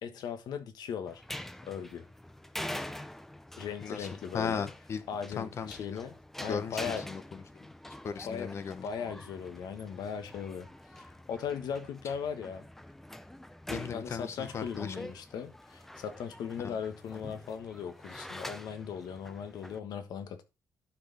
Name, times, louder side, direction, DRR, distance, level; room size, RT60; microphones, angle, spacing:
voice 1, 0.0-1.2 1.6-2.0 3.6-4.7 5.1-7.0 8.2-8.5 8.8-12.6 13.9-20.4, left 7 dB, 85° left, 1.4 m, -38 dB
sound 1, 1.1-19.8, left 1 dB, 5° left, 0.4 m, -45 dB
voice 2, 3.8-5.0 5.3-6.0 6.5-7.7 8.0-8.8 13.7-15.1 16.6-16.8, left 6 dB, 40° left, 0.9 m, -37 dB
12.0 x 4.8 x 4.1 m
wide cardioid pair, 180°, 7 cm